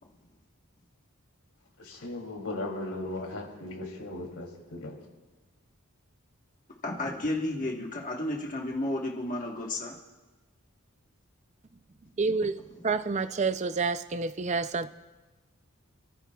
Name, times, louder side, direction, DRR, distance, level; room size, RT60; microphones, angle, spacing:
voice 1, 1.8-5.0, left 2 dB, 75° left, 0 dB, 2.9 m, -37 dB
voice 2, 6.8-9.9, left 1 dB, 35° left, -1 dB, 1.4 m, -32 dB
voice 3, 12.2-12.6 12.8-14.9, right 4 dB, 30° right, 11 dB, 0.5 m, -28 dB
27.5 x 14.0 x 2.4 m, 1.2 s
head